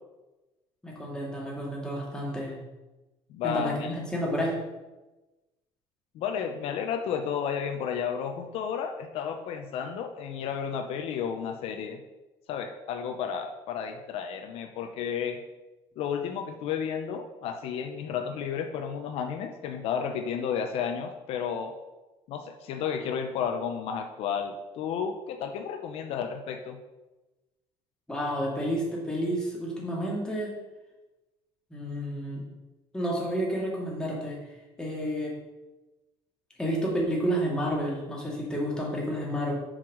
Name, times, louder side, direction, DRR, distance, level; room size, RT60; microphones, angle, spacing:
voice 1, 0.8-2.6 3.4-4.6 28.1-30.5 31.7-32.4 32.9-34.4 34.8-35.3 36.6-39.5, equal, 5° left, -4 dB, 2.7 m, -30 dB
voice 2, 3.3-3.9 6.1-12.0 12.5-15.4 16.0-21.8 22.3-26.8, left 7 dB, 70° left, 5 dB, 0.7 m, -32 dB
7.5 x 4.9 x 6.3 m, 1.1 s
cardioid pair, 130°, 10 cm